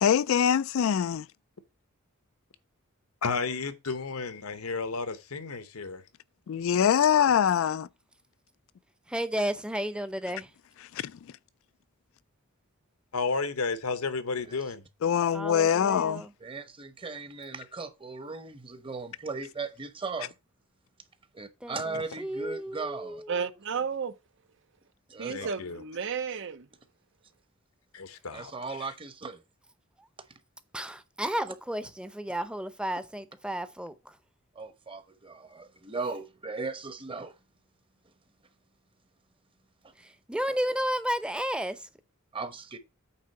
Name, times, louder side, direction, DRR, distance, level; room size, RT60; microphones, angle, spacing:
voice 1, 0.0-1.3 6.5-7.8 15.0-16.2, left 8 dB, 65° left, 0.3 m, -23 dB
voice 2, 3.2-6.0 13.1-14.8 25.3-25.8 27.9-28.5 28.8-28.9, left 4 dB, 85° left, 1.0 m, -32 dB
voice 3, 9.1-10.5 15.3-16.3 21.6-23.4 30.0-30.1 30.7-34.2 40.0-41.9, equal, 5° right, 0.7 m, -33 dB
voice 4, 16.4-20.3 21.3-23.2 25.1-25.5 28.3-29.4 34.5-37.3 39.8-39.9 42.3-42.8, right 4 dB, 25° right, 1.0 m, -37 dB
voice 5, 23.3-24.1 25.2-26.7, right 6 dB, 60° right, 0.8 m, -32 dB
8.7 x 3.7 x 6.5 m
head